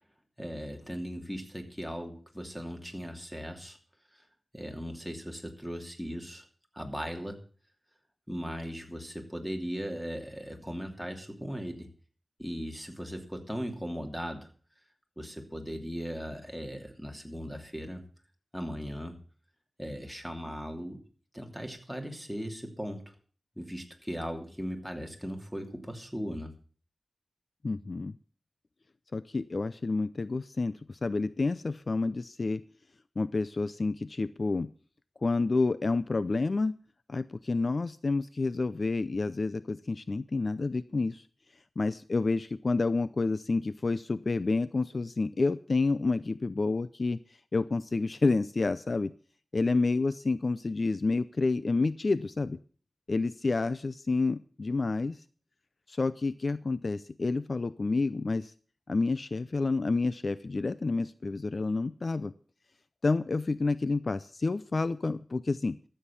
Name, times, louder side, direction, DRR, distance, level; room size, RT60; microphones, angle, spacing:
voice 1, 0.4-3.8 4.1-4.2 4.5-6.4 6.7-7.4 8.3-11.9 12.4-14.5 15.2-18.0 18.5-19.2 19.8-21.0 21.3-23.1 23.6-26.5, equal, ahead, 4 dB, 2.8 m, -38 dB
voice 2, 27.6-28.2 29.1-32.6 33.2-34.7 35.2-36.7 37.1-41.2 41.8-47.2 47.5-49.1 49.5-52.6 53.1-55.2 55.9-58.5 58.9-62.3 63.0-65.8, left 3 dB, 50° left, 15 dB, 0.5 m, -29 dB
13.5 x 7.9 x 7.1 m, 0.41 s
wide cardioid pair, 75°, 0 cm